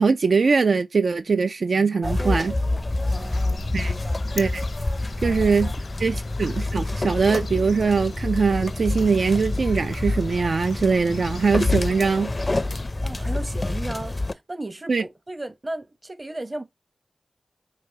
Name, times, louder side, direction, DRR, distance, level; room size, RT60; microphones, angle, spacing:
voice 1, 0.0-2.5 3.7-3.9 4.4-4.6 5.2-5.7 6.0-12.3 14.9-15.0, right 5 dB, 75° right, 0.3 m, -22 dB
ambience rural kitchen silence, 2.0-14.3, left 2 dB, 35° left, 0.4 m, -27 dB
voice 2, 2.0-4.2 5.2-6.2 13.0-16.6, right 1 dB, 30° right, 0.8 m, -36 dB
sound 1, 2.9-12.9, left 4 dB, 85° left, 0.6 m, -36 dB
4.7 x 3.2 x 2.8 m
cardioid pair, 55°, 0 cm